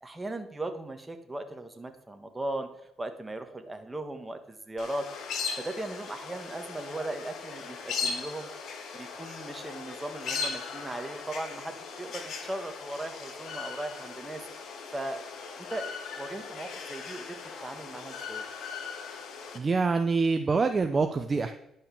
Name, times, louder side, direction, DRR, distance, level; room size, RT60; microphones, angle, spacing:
voice 1, 0.0-2.7 3.0-5.0 5.6-8.5 8.9-14.4 14.9-15.2 15.5-18.4, right 1 dB, 15° right, 6 dB, 1.5 m, -38 dB
sound 1, 4.8-19.6, left 5 dB, 65° left, 1.7 m, -38 dB
voice 2, 19.5-21.5, right 4 dB, 30° right, 7 dB, 0.7 m, -25 dB
10.5 x 5.6 x 6.9 m, 0.82 s
cardioid pair, 95°, 0 cm